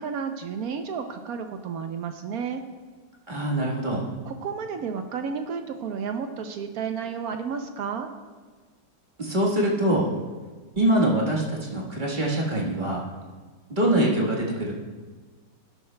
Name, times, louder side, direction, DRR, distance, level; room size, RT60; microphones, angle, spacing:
voice 1, 0.0-2.6 4.3-8.1, right 6 dB, 65° right, 6 dB, 1.0 m, -32 dB
voice 2, 3.3-4.1 9.2-10.1 10.8-13.0 13.7-14.7, right 1 dB, 30° right, -4 dB, 1.4 m, -24 dB
12.5 x 11.0 x 2.2 m, 1.4 s
omnidirectional pair, 1.9 m